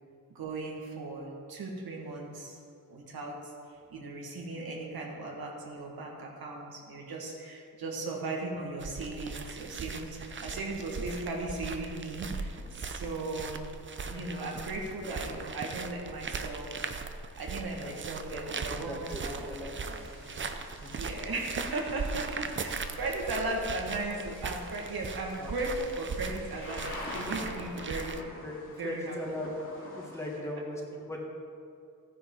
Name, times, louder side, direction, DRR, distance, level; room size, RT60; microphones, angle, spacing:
voice 1, 0.3-2.6 2.9-3.5 3.9-13.7 14.1-16.7 17.4-20.1 21.0-26.8 27.1-28.2 28.8-29.2, right 2 dB, 85° right, -1 dB, 2.0 m, -37 dB
sound 1, 8.8-28.2, right 4 dB, 35° right, 0.6 m, -39 dB
voice 2, 18.3-19.7 20.2-20.3 20.8-20.9 25.4-25.5 28.4-28.6 28.8-29.5 29.9-31.2, left 1 dB, 10° left, -2 dB, 1.6 m, -39 dB
Thunder / Rain, 19.8-30.4, left 1 dB, 35° left, 2.5 m, -47 dB
15.5 x 9.7 x 3.9 m, 2.4 s
wide cardioid pair, 165°, 36 cm